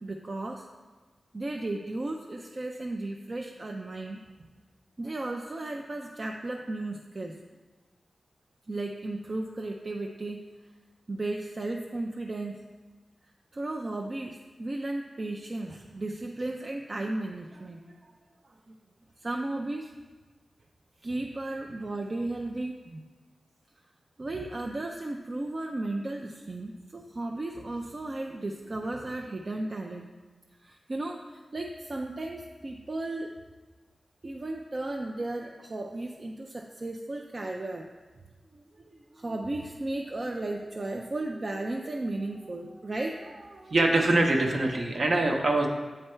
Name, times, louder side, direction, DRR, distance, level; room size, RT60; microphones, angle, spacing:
voice 1, 0.0-0.7 1.3-4.2 5.0-7.4 8.7-10.5 11.1-12.6 13.5-18.1 18.4-18.8 19.2-19.9 21.0-23.0 24.2-30.1 30.6-33.3 34.2-37.9 38.5-43.8, right 2 dB, 45° right, 2 dB, 0.4 m, -35 dB
voice 2, 43.7-45.7, right 2 dB, 65° right, 1 dB, 0.9 m, -23 dB
8.8 x 3.3 x 4.4 m, 1.3 s
wide cardioid pair, 70°, 0 cm